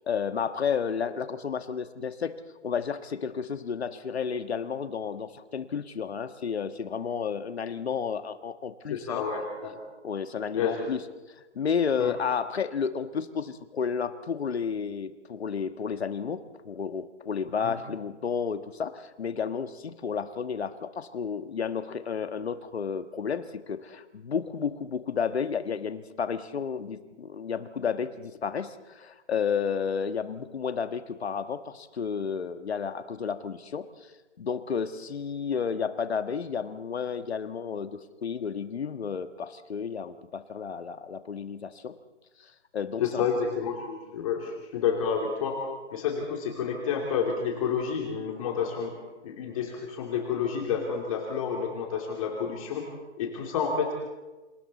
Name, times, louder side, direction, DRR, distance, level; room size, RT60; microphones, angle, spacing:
voice 1, 0.1-2.3 2.6-9.2 10.0-11.0 11.5-34.1 34.4-42.0 42.4-43.2, left 6 dB, 60° left, 10 dB, 1.5 m, -32 dB
voice 2, 8.9-9.8 10.5-10.9 12.0-12.1 17.6-17.8 43.0-45.6 45.9-49.0 49.2-52.8 53.2-53.9, left 6 dB, 30° left, 1 dB, 2.8 m, -29 dB
28.5 x 27.0 x 4.1 m, 1.2 s
hypercardioid pair, 155°, 36 cm